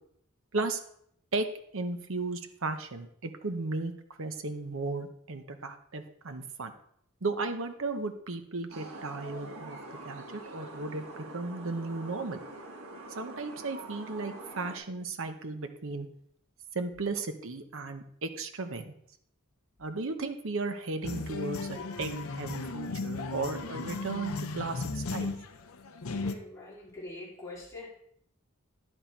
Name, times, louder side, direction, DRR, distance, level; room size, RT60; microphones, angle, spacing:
voice 1, 1.7-3.9 4.2-6.7 7.2-9.8 10.0-12.4 13.2-16.1 16.7-18.9 19.8-25.3, right 3 dB, 65° right, 7 dB, 0.9 m, -35 dB
sound 1, 8.7-14.8, right 2 dB, 80° right, 1.6 m, -45 dB
sound 2, 21.0-26.3, left 3 dB, 75° left, 0.7 m, -36 dB
voice 2, 26.2-27.9, left 2 dB, 15° left, -9 dB, 3.7 m, -44 dB
10.0 x 6.1 x 4.5 m, 0.69 s
head